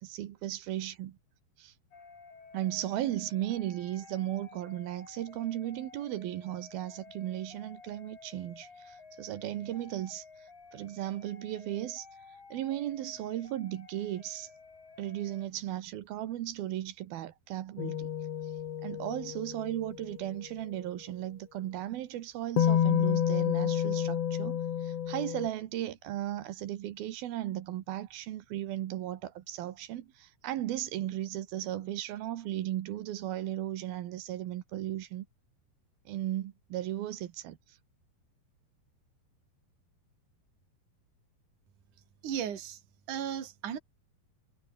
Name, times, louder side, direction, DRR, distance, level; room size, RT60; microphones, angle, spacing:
voice 1, 0.0-1.2 1.6-1.7 2.5-12.1 12.5-14.5 15.0-18.1 18.8-35.3 36.1-37.8, right 13 dB, 75° right, 3.0 m, -36 dB
sound 1, 1.9-15.5, left 4 dB, 75° left, 9.1 m, -53 dB
sound 2, 17.8-20.1 22.6-25.5, left 9 dB, 50° left, 2.1 m, -29 dB
voice 2, 42.2-42.8 43.1-43.8, right 9 dB, 55° right, 4.1 m, -35 dB
omnidirectional pair, 4.5 m